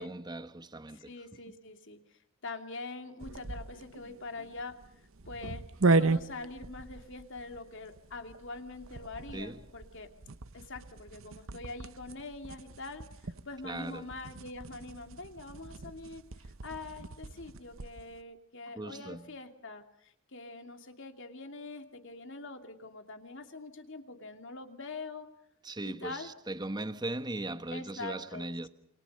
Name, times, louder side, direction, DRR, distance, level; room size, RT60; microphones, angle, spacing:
voice 1, 0.0-1.1 9.3-9.6 13.6-14.1 18.7-19.3 25.6-28.7, right 2 dB, 20° right, 1.0 m, -38 dB
voice 2, 0.9-4.8 5.3-5.6 5.9-10.1 10.5-25.3 25.8-26.3 27.7-28.7, left 3 dB, 55° left, 2.6 m, -44 dB
sound 1, 3.2-18.1, right 3 dB, 60° right, 1.0 m, -36 dB
28.0 x 25.5 x 6.6 m
head